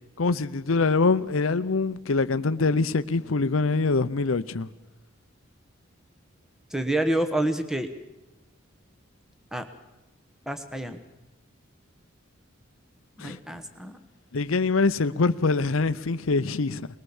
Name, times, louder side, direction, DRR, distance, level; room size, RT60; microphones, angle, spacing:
voice 1, 0.2-4.7 13.2-13.4 14.3-16.9, left 3 dB, 75° left, 0.7 m, -24 dB
voice 2, 6.7-7.9 9.5-9.7 10.5-11.0 13.2-14.0, right 1 dB, ahead, 1.2 m, -28 dB
20.5 x 20.5 x 7.2 m
head